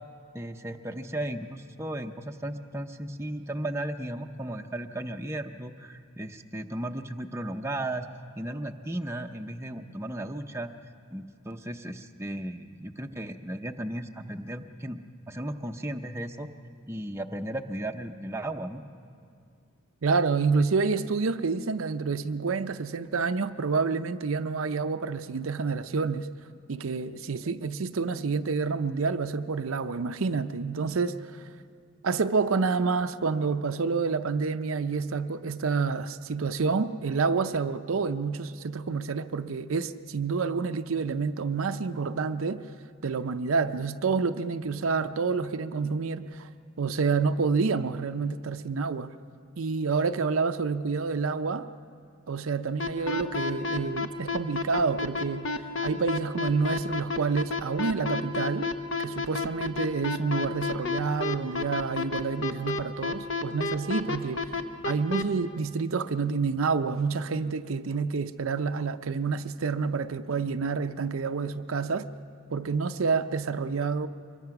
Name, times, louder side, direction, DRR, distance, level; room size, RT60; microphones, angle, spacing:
voice 1, 0.3-8.1 8.4-10.7 11.1-16.5 16.9-18.8, right 1 dB, 10° right, 0.6 m, -35 dB
voice 2, 20.0-26.3 26.7-31.4 32.0-42.6 43.0-46.5 46.8-49.1 49.6-51.7 52.3-55.5 55.8-58.7 59.0-64.4 64.8-72.1 72.5-74.1, right 4 dB, 75° right, 0.6 m, -28 dB
sound 1, 52.8-65.2, left 4 dB, 60° left, 1.0 m, -29 dB
24.5 x 22.0 x 5.9 m
head